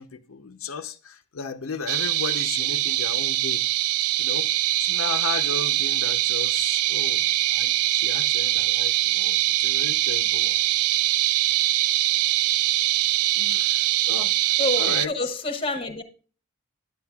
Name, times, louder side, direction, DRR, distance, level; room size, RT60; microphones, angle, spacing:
voice 1, 0.0-3.6 4.2-4.5 4.8-10.6 13.5-15.1, left 5 dB, 75° left, 0.6 m, -35 dB
sound 1, 1.9-15.1, right 15 dB, 85° right, 0.3 m, -23 dB
voice 2, 14.6-16.0, left 2 dB, 25° left, 0.9 m, -28 dB
10.0 x 8.6 x 2.3 m
head